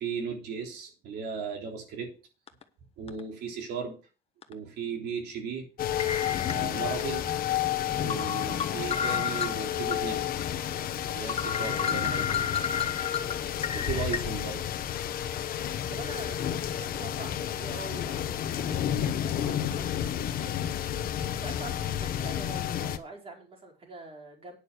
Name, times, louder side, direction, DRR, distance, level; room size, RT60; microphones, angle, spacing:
voice 1, 0.0-2.1 3.0-4.0 4.5-5.7 6.5-7.3 8.0-10.2 11.1-12.4 13.7-14.7, right 6 dB, 75° right, 2 dB, 3.6 m, -36 dB
sound 1, 2.5-2.6 3.1-3.2 4.4-4.5 6.0-7.0 7.5-7.6 8.1-10.0 10.4-10.5 10.9-11.0 11.3-14.2, left 7 dB, 35° left, 1.2 m, -32 dB
sound 2, 5.8-23.0, left 10 dB, 60° left, 1.0 m, -31 dB
voice 2, 15.9-20.7 21.0-24.6, right 2 dB, 35° right, 1 dB, 4.6 m, -45 dB
9.9 x 6.7 x 6.2 m, 0.34 s
cardioid pair, 110°, 17 cm